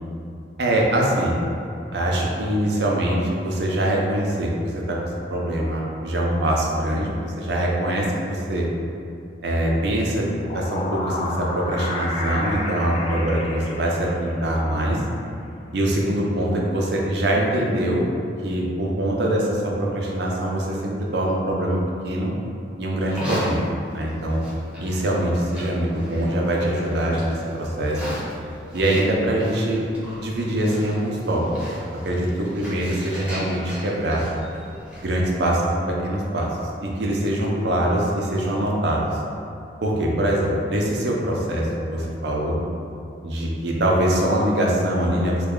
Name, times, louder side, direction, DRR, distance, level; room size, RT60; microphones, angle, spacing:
voice 1, 0.6-1.3 1.9-5.0 5.3-8.7 9.4-10.3 10.5-15.0 15.7-18.1 18.4-22.3 22.8-23.7 23.9-24.4 24.8-28.0 28.7-29.8 30.2-31.4 32.0-34.2 35.0-36.5 36.8-39.2 39.8-42.6 43.2-45.5, right 1 dB, 75° right, -2 dB, 0.5 m, -23 dB
sound 1, 10.3-14.6, left 2 dB, 35° left, 0.3 m, -31 dB
Livestock farm animals working animals, 23.0-35.2, equal, 5° right, 0.6 m, -36 dB
3.2 x 2.2 x 3.6 m, 2.6 s
head